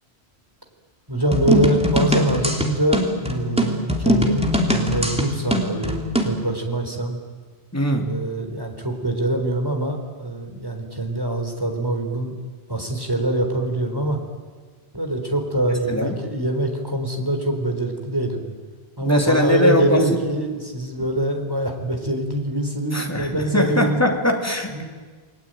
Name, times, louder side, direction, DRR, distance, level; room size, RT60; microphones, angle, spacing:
voice 1, 1.1-7.2 8.1-12.3 12.7-14.2 14.9-18.4 19.0-24.0 24.7-24.8, right 1 dB, 20° right, 4 dB, 4.1 m, -24 dB
sound 1, 1.3-6.4, equal, 5° right, 2.9 m, -21 dB
voice 2, 7.7-8.2 15.7-16.2 19.0-20.2 21.0-21.1 22.9-24.8, left 1 dB, 15° left, 2 dB, 3.1 m, -22 dB
29.5 x 20.5 x 9.1 m, 1.5 s
omnidirectional pair, 1.1 m